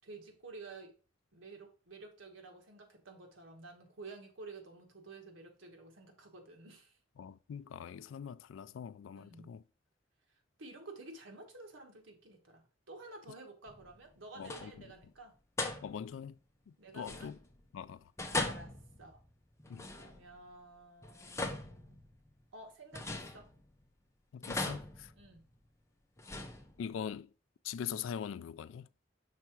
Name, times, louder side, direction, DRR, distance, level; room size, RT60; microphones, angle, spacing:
voice 1, 0.0-0.9 1.3-7.0 9.1-9.5 10.6-15.4 16.8-17.3 18.3-19.2 19.9-22.0 22.5-23.5 25.2-25.5, right 3 dB, 80° right, 1.5 m, -52 dB
voice 2, 7.2-9.6 14.4-14.9 15.8-16.4 16.7-17.4 17.7-18.1 19.7-19.8 24.3-25.1 26.8-27.3 27.6-28.9, left 8 dB, 80° left, 0.3 m, -42 dB
sound 1, 13.7-14.1 14.4-14.9 15.6-16.2 17.0-17.7 18.2-20.4 21.0-22.4 22.9-23.9 24.4-25.7 26.2-27.1, left 2 dB, 15° left, 0.8 m, -40 dB
5.8 x 3.6 x 4.5 m
head